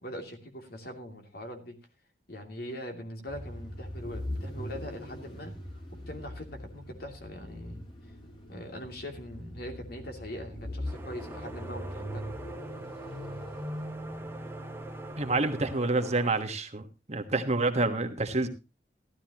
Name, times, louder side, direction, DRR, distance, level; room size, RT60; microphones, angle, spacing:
voice 1, 0.0-1.8 2.3-5.5 6.1-7.8 8.5-12.2, equal, 60° left, 4 dB, 2.8 m, -42 dB
sound 1, 3.3-15.5, equal, 30° left, 3.3 m, -41 dB
sound 2, 10.9-16.3, right 2 dB, 15° right, 1.0 m, -45 dB
voice 2, 15.2-16.8 17.1-18.5, right 2 dB, 40° right, 7 dB, 1.4 m, -28 dB
15.0 x 12.5 x 3.0 m, 0.28 s
head